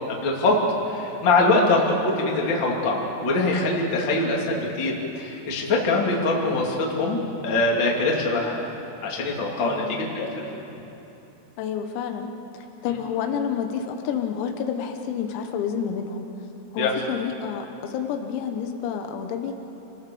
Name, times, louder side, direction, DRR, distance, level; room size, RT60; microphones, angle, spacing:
voice 1, 0.1-0.6 0.9-8.6 9.0-10.3 16.8-16.9, left 2 dB, 30° left, -2 dB, 2.4 m, -23 dB
voice 2, 9.6-9.9 11.6-12.3 12.8-16.3 16.7-19.5, left 7 dB, 90° left, 5 dB, 4.0 m, -29 dB
29.5 x 18.0 x 7.0 m, 3.0 s
omnidirectional pair, 6.0 m